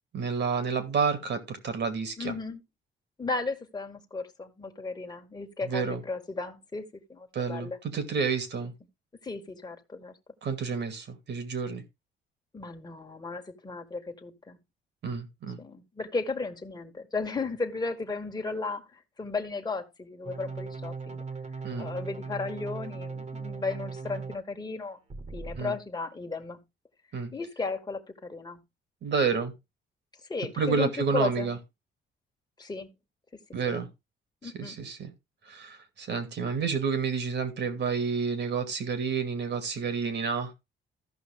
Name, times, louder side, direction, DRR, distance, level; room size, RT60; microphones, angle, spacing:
voice 1, 0.1-2.3 5.6-6.0 7.3-8.7 10.4-11.8 15.0-15.6 21.6-21.9 25.6-25.7 27.1-27.3 29.0-29.5 30.6-31.6 33.5-33.9 34.4-35.1 35.5-40.5, right 5 dB, 60° right, 2.4 m, -29 dB
voice 2, 2.2-2.6 3.2-7.8 9.2-10.2 12.5-14.6 15.6-21.2 21.8-25.0 25.3-26.6 27.3-28.6 30.3-31.5 32.6-32.9 33.6-33.7 34.4-34.8, left 3 dB, 20° left, 1.7 m, -35 dB
sound 1, 20.3-24.4 25.1-25.6, right 4 dB, 35° right, 1.6 m, -38 dB
14.5 x 5.7 x 3.6 m
cardioid pair, 90°, 20 cm